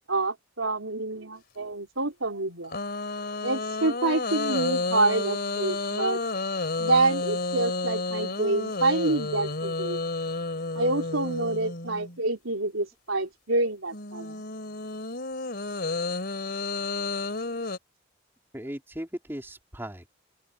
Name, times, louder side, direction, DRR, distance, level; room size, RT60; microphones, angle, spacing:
voice 1, 0.1-2.7 3.4-6.2 6.8-10.0 10.8-14.4, right 2 dB, 80° right, 4.1 m, -27 dB
sound 1, 2.7-12.2 13.9-17.8, left 3 dB, 50° left, 3.3 m, -31 dB
voice 2, 18.5-20.1, equal, 10° right, 3.7 m, -37 dB
open air
head